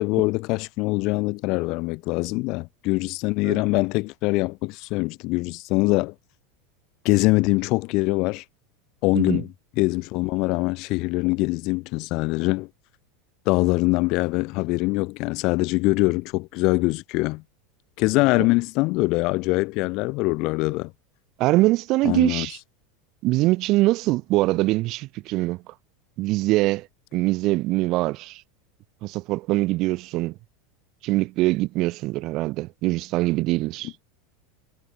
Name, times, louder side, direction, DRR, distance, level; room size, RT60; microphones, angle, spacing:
voice 1, 0.0-6.1 7.0-8.4 9.0-9.5 9.8-12.7 13.5-17.4 18.0-20.9 22.0-22.5, left 24 dB, 50° left, 3.8 m, -23 dB
voice 2, 21.4-22.6 23.2-25.6 26.2-26.9 27.1-28.4 29.0-30.3 31.0-33.9, right 19 dB, 45° right, 3.2 m, -23 dB
supercardioid pair, 140°, 0 cm